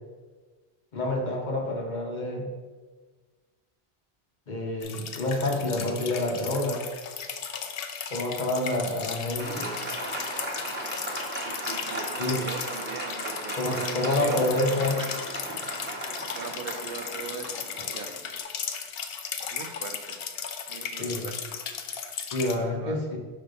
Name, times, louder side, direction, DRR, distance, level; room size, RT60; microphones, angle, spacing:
voice 1, 0.9-2.5 4.5-6.8 8.1-9.7 12.2-12.4 13.6-15.0 17.8-17.9 21.0-21.3 22.3-23.2, left 1 dB, 45° left, 1 dB, 1.0 m, -28 dB
sound 1, 4.8-22.6, left 7 dB, 70° left, 0.8 m, -36 dB
voice 2, 8.8-9.5 11.3-14.4 14.9-15.6 16.3-17.7 17.9-18.5 19.5-20.2 20.7-21.6 22.5-23.0, right 6 dB, 65° right, 6 dB, 0.7 m, -41 dB
Applause, 9.4-18.4, right 1 dB, 10° right, 0.9 m, -36 dB
5.4 x 4.1 x 5.4 m, 1.4 s
omnidirectional pair, 1.1 m